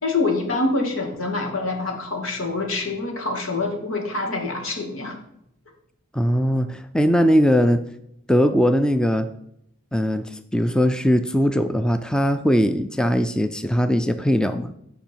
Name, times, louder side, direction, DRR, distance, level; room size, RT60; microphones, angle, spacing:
voice 1, 0.0-5.2, left 3 dB, 85° left, 1 dB, 2.2 m, -25 dB
voice 2, 6.1-7.8 8.3-9.3 9.9-14.7, equal, 5° left, 9 dB, 0.4 m, -20 dB
14.0 x 5.1 x 4.6 m, 0.77 s
head